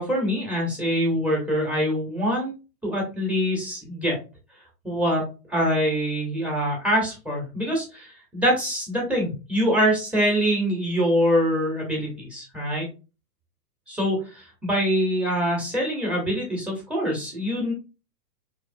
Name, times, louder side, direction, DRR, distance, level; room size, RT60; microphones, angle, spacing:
voice 1, 0.0-2.5 2.8-4.2 4.8-5.2 5.5-12.9 13.9-17.7, equal, 5° right, -1 dB, 1.0 m, -24 dB
4.7 x 3.1 x 2.6 m, 0.30 s
hypercardioid pair, 155°, 49 cm